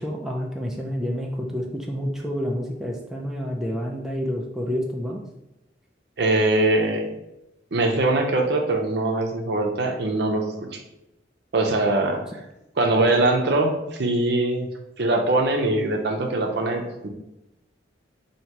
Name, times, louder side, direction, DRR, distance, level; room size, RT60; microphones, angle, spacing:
voice 1, 0.0-5.2, equal, ahead, -1 dB, 0.3 m, -29 dB
voice 2, 6.2-7.1 7.7-10.8 11.5-12.2 12.8-13.7 14.0-14.7 15.0-17.1, right 2 dB, 60° right, 3 dB, 0.6 m, -22 dB
2.9 x 2.8 x 4.4 m, 0.91 s
head